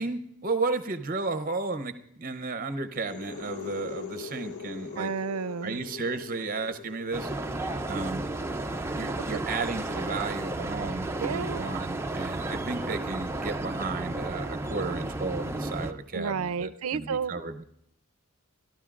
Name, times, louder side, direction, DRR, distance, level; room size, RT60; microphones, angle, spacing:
voice 1, 0.0-5.1 5.6-7.3 7.9-8.2 8.6-17.6, right 3 dB, 40° right, 11 dB, 0.7 m, -33 dB
sound 1, 2.9-10.5, left 5 dB, 85° left, 0.8 m, -43 dB
voice 2, 5.0-5.8 9.3-9.4 11.2-11.7 16.1-17.3, right 6 dB, 85° right, 16 dB, 0.5 m, -31 dB
sound 2, 7.1-15.9, right 2 dB, 10° right, 0.4 m, -33 dB
27.0 x 13.0 x 2.5 m, 0.73 s
head